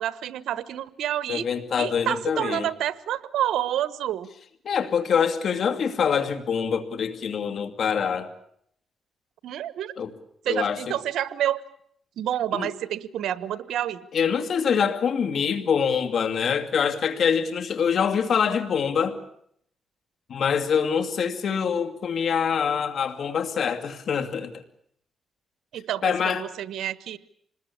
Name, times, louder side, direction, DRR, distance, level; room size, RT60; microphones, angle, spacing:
voice 1, 0.0-1.5 1.8-4.3 9.4-9.9 10.4-11.6 12.2-14.1 25.7-27.2, right 11 dB, 85° right, 16 dB, 1.1 m, -28 dB
voice 2, 1.3-2.7 4.7-8.3 10.0-10.1 10.5-10.9 12.5-12.7 14.1-19.2 20.3-24.6 26.0-26.4, left 7 dB, 65° left, 6 dB, 2.5 m, -25 dB
26.5 x 20.5 x 8.6 m, 0.68 s
cardioid pair, 85°, 0 cm